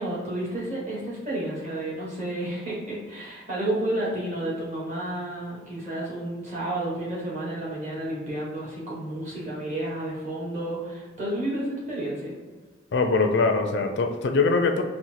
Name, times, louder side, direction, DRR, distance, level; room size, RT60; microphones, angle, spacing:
voice 1, 0.0-12.3, right 1 dB, 35° right, -6 dB, 1.4 m, -31 dB
voice 2, 12.9-14.8, left 3 dB, 55° left, 5 dB, 0.4 m, -22 dB
4.1 x 2.1 x 4.5 m, 1.3 s
head